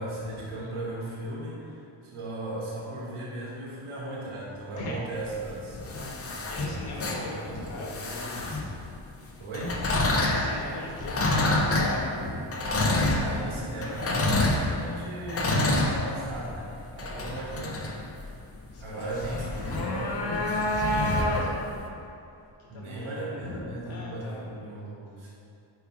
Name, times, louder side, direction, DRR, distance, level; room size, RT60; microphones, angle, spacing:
voice 1, 0.0-5.8 6.3-8.0 9.4-9.8 13.1-17.9 18.8-20.5 22.7-25.3, right 1 dB, 80° right, -5 dB, 1.1 m, -37 dB
sound 1, 5.4-8.9 9.5-21.9, left 2 dB, 30° left, 0.5 m, -28 dB
voice 2, 5.7-8.5 10.2-12.4 17.0-17.4 18.7-19.9 20.7-21.6 22.7-24.4, left 2 dB, 80° left, -3 dB, 1.3 m, -40 dB
sound 2, 19.4-21.8, left 1 dB, 55° left, 0.8 m, -29 dB
4.8 x 4.4 x 4.7 m, 2.6 s
wide cardioid pair, 165°, 49 cm